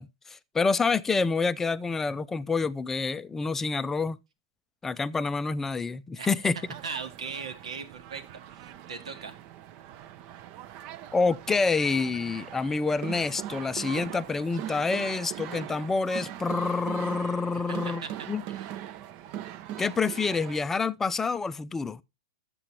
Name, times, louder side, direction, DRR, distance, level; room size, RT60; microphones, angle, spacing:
voice 1, 0.0-4.2 4.8-6.6 11.1-18.4 19.8-22.0, left 4 dB, 10° left, 0.4 m, -27 dB
sound 1, 6.6-20.6, right 12 dB, 40° right, 0.6 m, -41 dB
voice 2, 6.8-8.3 8.5-9.4 17.5-18.1 18.5-19.0, right 5 dB, 85° right, 1.6 m, -39 dB
11.5 x 7.7 x 2.9 m
hypercardioid pair, 135°, 3 cm